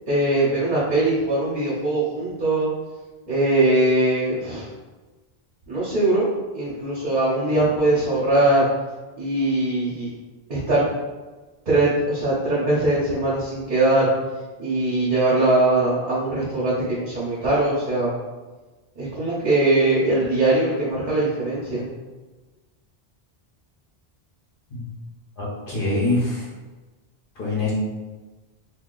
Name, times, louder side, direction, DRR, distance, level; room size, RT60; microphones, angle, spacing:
voice 1, 0.1-2.7 3.3-4.7 5.7-6.3 6.5-8.7 9.2-10.1 10.5-10.8 11.7-14.1 14.6-18.1 19.0-21.8, right 2 dB, 50° right, -8 dB, 0.9 m, -21 dB
voice 2, 25.4-26.5 27.4-27.7, left 2 dB, 60° left, -5 dB, 1.0 m, -24 dB
2.7 x 2.4 x 3.8 m, 1.2 s
omnidirectional pair, 1.0 m